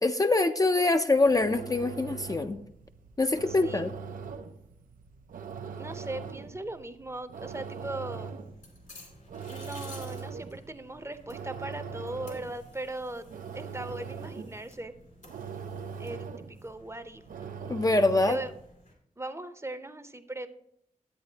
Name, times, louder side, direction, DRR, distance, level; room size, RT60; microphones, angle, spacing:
voice 1, 0.0-2.6 3.2-3.9 17.7-18.4, left 2 dB, 25° left, 7 dB, 0.4 m, -24 dB
sound 1, 1.1-18.7, right 6 dB, 90° right, 0.5 m, -42 dB
voice 2, 5.8-8.3 9.5-14.9 16.0-17.2 18.3-18.5 19.2-20.5, right 2 dB, 20° right, 10 dB, 0.6 m, -39 dB
sound 2, 7.4-18.9, left 2 dB, 70° left, 2.6 m, -54 dB
9.7 x 7.9 x 2.8 m, 0.74 s
cardioid pair, 50°, 14 cm